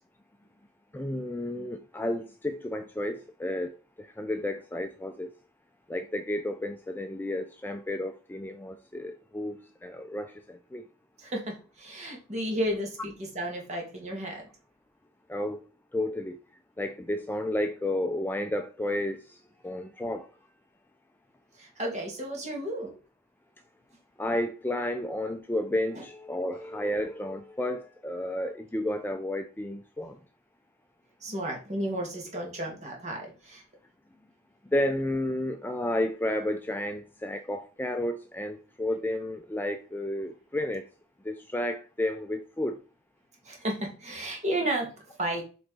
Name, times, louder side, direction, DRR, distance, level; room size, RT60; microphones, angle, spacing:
voice 1, 0.9-5.3 5.9-10.8 15.3-15.7 15.9-16.4 16.8-20.3 24.2-30.2 34.7-40.9 41.2-42.8, left 1 dB, 10° left, 0.4 m, -32 dB
voice 2, 11.2-14.4 21.6-22.9 26.0-26.1 31.2-33.6 43.5-45.4, right 1 dB, 35° right, 2.2 m, -33 dB
7.8 x 3.9 x 3.9 m
head